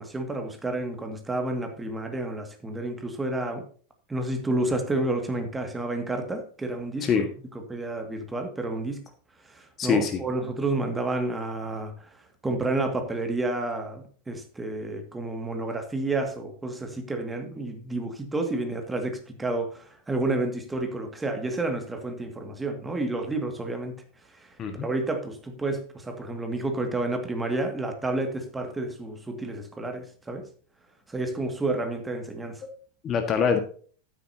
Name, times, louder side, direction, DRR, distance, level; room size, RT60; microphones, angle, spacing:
voice 1, 0.0-3.7 4.1-7.3 7.5-9.0 9.5-11.9 12.4-23.9 24.8-30.5 31.1-32.6, right 2 dB, 10° right, 5 dB, 2.1 m, -30 dB
voice 2, 9.8-10.2 24.6-24.9 33.0-33.6, left 6 dB, 25° left, 7 dB, 1.6 m, -24 dB
13.0 x 9.6 x 2.8 m, 0.43 s
figure-of-eight pair, 90°, 0 cm